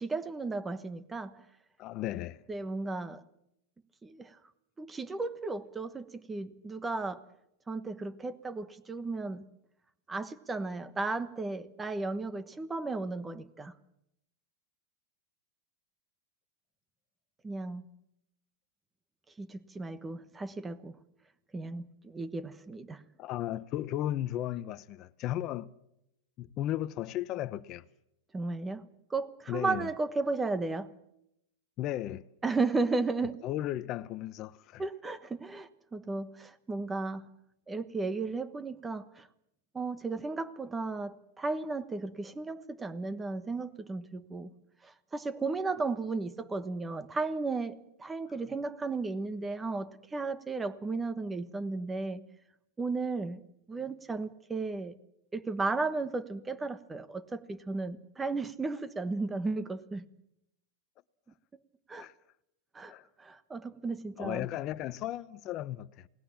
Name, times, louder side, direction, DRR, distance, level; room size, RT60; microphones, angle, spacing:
voice 1, 0.0-1.4 2.5-3.2 4.0-4.4 4.8-7.2 7.7-9.4 10.1-13.7 17.4-17.8 19.4-21.0 21.5-23.0 28.3-30.9 32.4-33.4 34.8-37.3 37.7-39.3 39.7-44.5 44.8-52.2 52.8-53.4 53.7-54.9 55.3-60.0 61.9-62.1 62.7-62.9 63.2-64.5, right 3 dB, 10° right, 1.2 m, -34 dB
voice 2, 1.8-2.4 23.2-25.7 26.4-27.8 29.5-29.9 31.8-32.2 33.4-34.8 62.0-62.1 62.9-63.0 64.2-66.1, left 13 dB, 30° left, 0.8 m, -35 dB
28.5 x 19.0 x 7.3 m
supercardioid pair, 160°, 0 cm